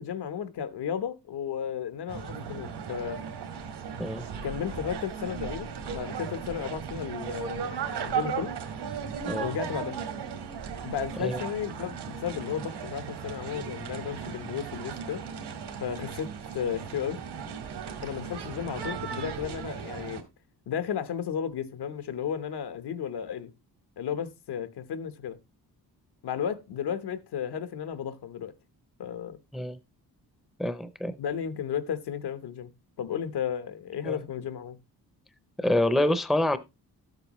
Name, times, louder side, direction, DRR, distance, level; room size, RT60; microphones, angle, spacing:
voice 1, 0.0-3.2 4.4-8.5 9.4-10.0 10.8-15.2 15.8-17.2 18.0-20.2 20.7-23.5 24.0-25.4 26.2-28.5 29.0-29.4 31.2-32.7 33.0-34.8, left 8 dB, 80° left, 1.1 m, -34 dB
sound 1, 2.1-20.2, right 7 dB, 85° right, 1.9 m, -36 dB
voice 2, 30.6-31.2 34.1-34.2 35.6-36.6, left 1 dB, ahead, 0.5 m, -26 dB
13.0 x 8.0 x 3.0 m
wide cardioid pair, 165°, 39 cm